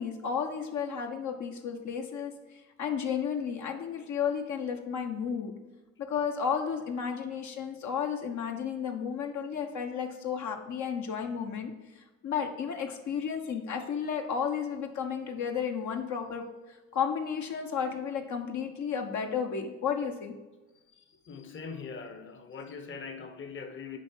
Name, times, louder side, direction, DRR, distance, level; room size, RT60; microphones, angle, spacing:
voice 1, 0.0-2.3 2.8-5.5 6.1-20.3, left 7 dB, 75° left, 3 dB, 1.0 m, -33 dB
voice 2, 21.3-24.0, left 5 dB, 40° left, 7 dB, 0.9 m, -41 dB
7.4 x 4.6 x 4.4 m, 1.1 s
cardioid pair, 90°, 30 cm